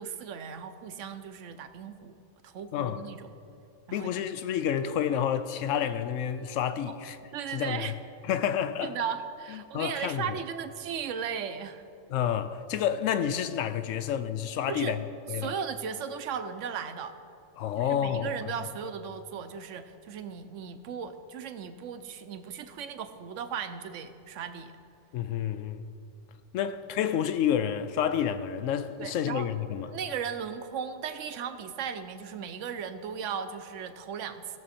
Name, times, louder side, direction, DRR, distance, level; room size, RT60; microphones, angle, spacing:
voice 1, 0.0-2.1 2.4-3.3 3.9-4.2 7.3-7.9 8.8-11.8 14.7-15.0 15.4-17.2 17.8-24.7 29.0-29.5 29.9-34.6, right 7 dB, 80° right, 1.0 m, -36 dB
voice 2, 3.9-7.2 7.5-7.9 8.3-8.9 9.5-10.4 12.1-15.0 15.3-15.5 17.6-18.4 25.1-25.8 26.5-29.9, left 9 dB, 85° left, 1.0 m, -29 dB
17.0 x 6.9 x 4.2 m
omnidirectional pair, 1.3 m